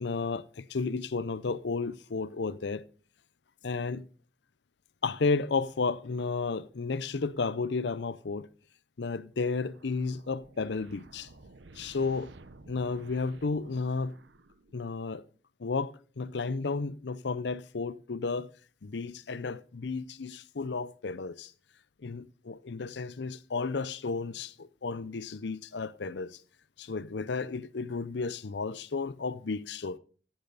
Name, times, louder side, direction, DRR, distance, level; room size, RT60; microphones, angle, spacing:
voice 1, 0.0-2.8 3.6-4.0 5.0-8.5 9.0-11.3 11.8-12.3 12.7-14.1 14.7-15.2 15.6-18.5 18.8-21.5 22.0-26.4 26.8-30.0, left 4 dB, 70° left, 0.6 m, -33 dB
sound 1, 9.6-15.0, right 2 dB, 80° right, 1.0 m, -54 dB
14.5 x 10.5 x 4.0 m
head